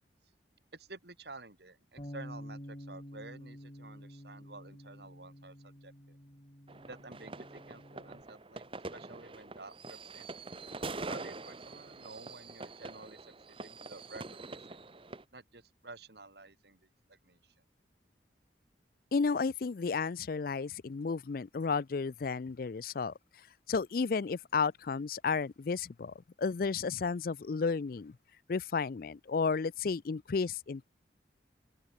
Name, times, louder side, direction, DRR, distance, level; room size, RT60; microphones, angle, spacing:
voice 1, 0.7-6.2 6.9-10.3 11.1-14.8 15.3-17.5, right 2 dB, 65° right, 3.5 m, -51 dB
Bass guitar, 2.0-8.2, equal, 35° left, 6.7 m, -49 dB
sound 1, 6.7-15.2, right 3 dB, 30° right, 1.1 m, -44 dB
voice 2, 19.1-23.1 23.7-28.1 28.5-30.8, left 5 dB, 50° left, 0.4 m, -32 dB
open air
head